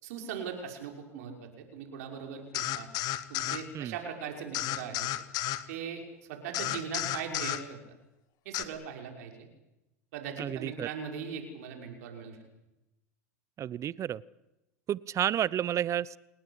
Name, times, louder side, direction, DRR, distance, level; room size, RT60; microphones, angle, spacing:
voice 1, 0.0-2.9 3.3-5.1 5.7-6.0 6.3-7.8 8.4-9.5 10.1-12.4, right 7 dB, 65° right, 3 dB, 5.9 m, -39 dB
sound 1, 2.5-3.6 4.5-5.6 6.5-7.6 8.5-8.6, left 14 dB, 50° left, 1.9 m, -32 dB
voice 2, 10.4-10.9 13.6-14.2 14.9-16.2, right 10 dB, 35° right, 22 dB, 0.8 m, -31 dB
29.0 x 19.0 x 8.3 m, 0.93 s
hypercardioid pair, 85°, 9 cm